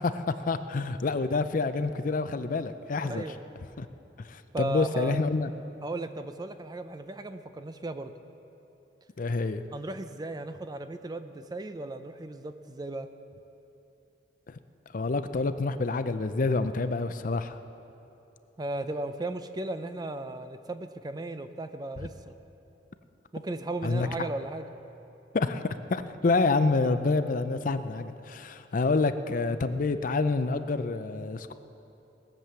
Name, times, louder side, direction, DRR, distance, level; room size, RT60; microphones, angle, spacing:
voice 1, 0.0-3.2 3.8-3.9 4.3-5.5 9.2-9.6 14.5-14.6 14.9-17.6 22.0-22.1 23.8-24.1 25.3-25.6 25.9-31.5, left 3 dB, 50° left, 11 dB, 0.5 m, -27 dB
voice 2, 3.0-3.4 4.5-5.2 5.8-8.1 9.7-13.1 18.6-22.3 23.3-24.7, right 2 dB, 20° right, 9 dB, 0.5 m, -36 dB
19.5 x 7.6 x 6.9 m, 2.9 s
head